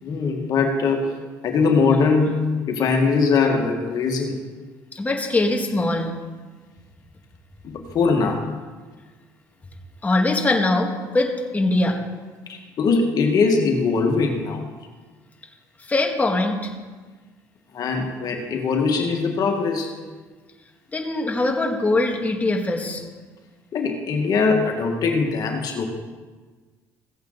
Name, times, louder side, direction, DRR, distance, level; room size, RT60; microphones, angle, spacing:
voice 1, 0.0-1.1 1.4-4.4 7.6-8.5 12.5-14.6 17.7-19.9 23.7-25.8, left 4 dB, 55° left, 3 dB, 1.8 m, -21 dB
voice 2, 4.9-6.1 10.0-12.0 15.9-16.7 20.9-23.0, left 2 dB, 20° left, 2 dB, 1.8 m, -22 dB
16.0 x 8.2 x 4.0 m, 1.4 s
supercardioid pair, 90°, 8 cm